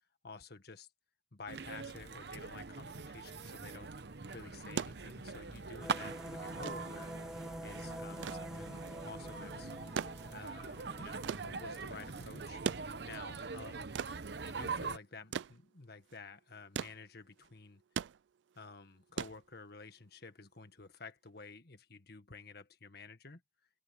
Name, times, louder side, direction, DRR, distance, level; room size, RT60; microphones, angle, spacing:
voice 1, 0.2-0.9 1.3-3.9 4.3-7.3 7.6-9.7 10.3-12.6 13.0-13.9 14.4-17.8 18.5-23.4, left 4 dB, 60° left, 1.6 m, -51 dB
sound 1, 1.5-15.0, right 4 dB, 65° right, 0.9 m, -43 dB
sound 2, 4.8-20.0 21.3-21.4, right 7 dB, 90° right, 0.4 m, -43 dB
sound 3, 5.8-12.8, equal, 5° right, 0.4 m, -48 dB
open air
head